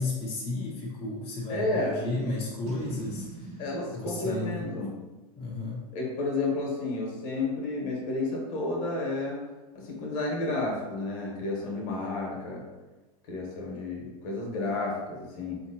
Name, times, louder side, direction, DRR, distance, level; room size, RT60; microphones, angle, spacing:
voice 1, 0.0-3.5 3.9-4.6 5.4-5.8, left 2 dB, 30° left, -5 dB, 0.8 m, -33 dB
voice 2, 1.5-2.0 3.6-5.0 5.9-9.4 9.7-12.6 13.2-15.6, left 2 dB, 60° left, -1 dB, 1.3 m, -31 dB
Boom, 2.7-6.0, right 2 dB, 35° right, 0.6 m, -44 dB
3.4 x 2.9 x 2.8 m, 1.2 s
hypercardioid pair, 105°, 20 cm